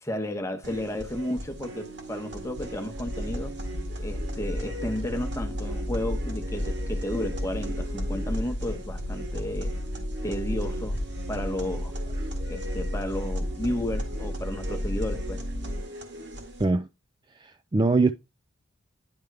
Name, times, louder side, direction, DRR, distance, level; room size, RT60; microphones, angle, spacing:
voice 1, 0.0-3.5 4.0-9.7 10.2-11.0 11.3-11.9 12.5-15.4, left 1 dB, 15° left, 1.0 m, -33 dB
sound 1, 0.6-16.6, right 2 dB, 55° right, 1.9 m, -39 dB
sound 2, 3.1-15.8, left 1 dB, 60° left, 1.0 m, -32 dB
voice 2, 17.4-18.1, right 3 dB, 20° right, 0.3 m, -22 dB
10.5 x 3.5 x 4.6 m
head